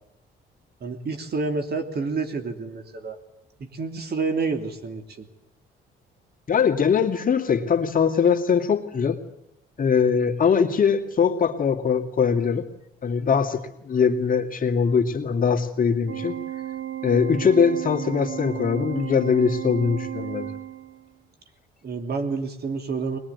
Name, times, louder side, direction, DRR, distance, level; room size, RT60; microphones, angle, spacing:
voice 1, 0.8-3.2 3.6-5.3 21.8-23.2, right 4 dB, 50° right, 6 dB, 3.1 m, -29 dB
voice 2, 6.5-9.2 9.8-12.7 13.0-16.4 17.0-20.5, left 6 dB, 40° left, 3 dB, 2.5 m, -21 dB
Organ, 16.1-21.1, right 12 dB, 70° right, 1.7 m, -34 dB
21.5 x 21.5 x 9.7 m, 0.85 s
cardioid pair, 95°, 21 cm